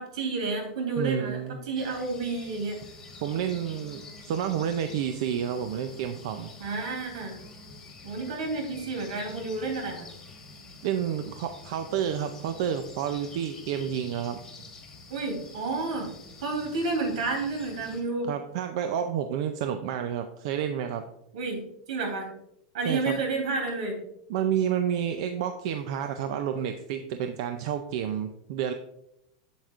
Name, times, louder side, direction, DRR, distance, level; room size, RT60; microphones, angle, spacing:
voice 1, 0.0-2.8 6.6-7.4 8.0-10.1 15.1-16.1 16.4-18.3 21.3-21.6 21.9-22.3 22.7-23.9, right 3 dB, 75° right, 2 dB, 3.1 m, -30 dB
voice 2, 1.0-1.6 3.2-6.5 10.8-14.4 18.3-21.0 22.9-23.2 24.3-28.7, right 9 dB, 50° right, 7 dB, 0.5 m, -30 dB
sound 1, 1.7-18.0, left 3 dB, 10° left, 1.4 m, -47 dB
7.9 x 7.9 x 2.5 m, 0.78 s
supercardioid pair, 175°, 4 cm